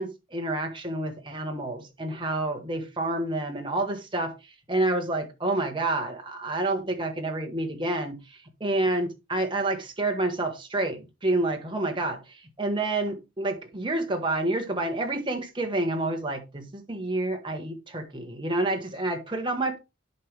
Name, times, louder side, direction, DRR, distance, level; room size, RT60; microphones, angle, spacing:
voice 1, 0.0-4.3 4.7-19.8, right 2 dB, 20° right, 1.3 m, -29 dB
11.0 x 4.7 x 3.3 m
head